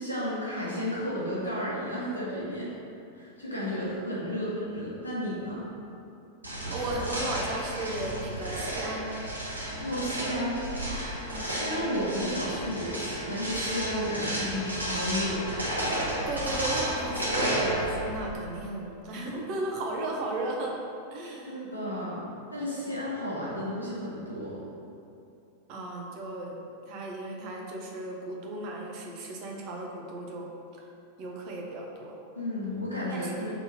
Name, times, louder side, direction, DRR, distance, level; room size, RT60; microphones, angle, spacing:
voice 1, 0.0-2.7 3.1-5.6 9.5-10.6 11.2-15.4 21.4-24.6 32.3-33.5, equal, 85° left, -7 dB, 1.5 m, -33 dB
voice 2, 3.5-3.9 6.7-9.2 11.3-11.5 16.2-20.8 21.1-21.5 22.8-23.0 25.7-26.6 26.9-30.5 31.2-32.2 33.1-33.5, right 2 dB, 40° right, -1 dB, 1.1 m, -35 dB
sound 1, 6.4-18.3, right 1 dB, 80° right, 1.2 m, -32 dB
5.7 x 4.0 x 5.9 m, 2.7 s
figure-of-eight pair, 90°, 0 cm